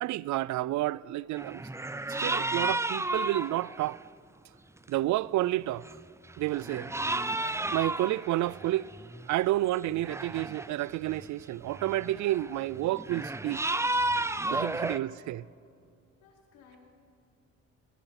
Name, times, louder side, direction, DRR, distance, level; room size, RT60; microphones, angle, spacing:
voice 1, 0.0-1.6 2.1-4.0 4.9-5.9 6.4-6.9 7.7-8.9 9.3-13.6 14.5-15.4, right 15 dB, 70° right, 0.5 m, -30 dB
sound 1, 1.4-4.0 4.9-5.0 5.7-6.0 6.3-9.3 9.9-10.7 11.1-15.0, right 2 dB, 10° right, 0.6 m, -33 dB
voice 2, 6.6-7.0 14.6-15.1 16.2-16.8, left 5 dB, 90° left, 5.1 m, -58 dB
22.0 x 22.0 x 5.9 m
cardioid pair, 90°, 30 cm